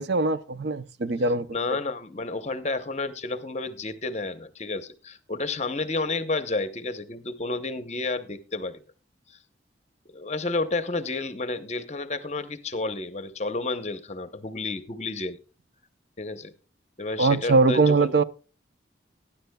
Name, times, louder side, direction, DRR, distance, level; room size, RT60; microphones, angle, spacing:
voice 1, 0.0-1.5 17.2-18.2, right 3 dB, 65° right, 0.6 m, -21 dB
voice 2, 1.5-8.8 9.3-9.4 10.1-15.4 16.2-16.5 17.0-18.1, left 3 dB, 35° left, 0.8 m, -31 dB
19.5 x 10.0 x 2.2 m
head